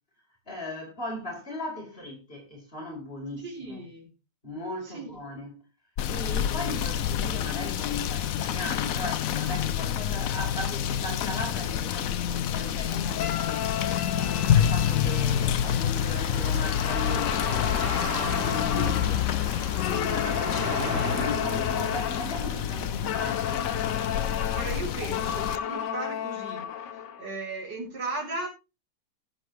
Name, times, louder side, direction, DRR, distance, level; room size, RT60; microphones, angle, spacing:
voice 1, 0.5-3.8 4.4-5.6 6.1-13.7 14.1-17.6 18.3-19.2 19.8-23.6, left 1 dB, 35° left, 4.8 m, -38 dB
voice 2, 3.4-4.1 4.8-5.1 18.8-18.9 24.5-26.7 27.2-28.5, right 2 dB, 85° right, 4.5 m, -36 dB
Rain / Motor vehicle (road), 6.0-25.6, left 9 dB, 65° left, 1.0 m, -28 dB
sound 1, 13.1-16.2 16.6-19.2 19.8-22.4 23.1-27.3, left 9 dB, 90° left, 1.6 m, -33 dB
Car passing by, 13.2-24.7, equal, 45° right, 5.0 m, -38 dB
16.5 x 7.8 x 3.2 m
omnidirectional pair, 1.8 m